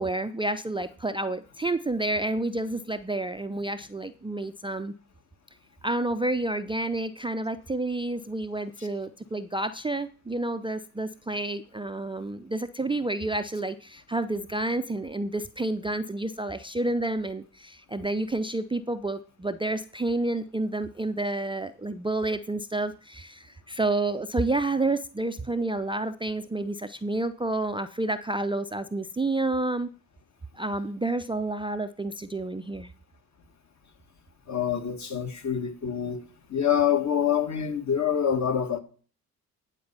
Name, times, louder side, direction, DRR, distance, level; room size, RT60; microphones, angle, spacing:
voice 1, 0.0-4.9 5.8-29.9 30.5-32.9, right 2 dB, 10° right, 0.5 m, -29 dB
voice 2, 34.5-36.2 36.5-38.8, left 8 dB, 40° left, 1.7 m, -26 dB
9.5 x 4.5 x 6.8 m
hypercardioid pair, 50°, 44 cm